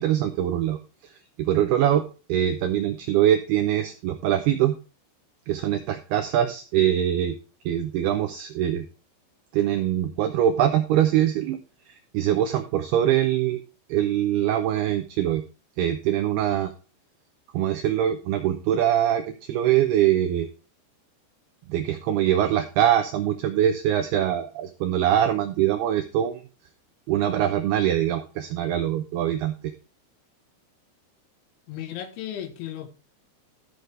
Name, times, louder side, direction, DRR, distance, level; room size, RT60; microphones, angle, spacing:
voice 1, 0.0-4.8 5.5-7.4 7.7-8.9 9.5-11.6 11.9-13.6 13.9-15.4 15.8-16.7 17.5-20.5 21.7-26.5 27.1-29.7, right 11 dB, 90° right, 2.2 m, -23 dB
voice 2, 31.7-32.9, left 11 dB, 80° left, 3.5 m, -35 dB
13.5 x 6.6 x 3.3 m
omnidirectional pair, 5.6 m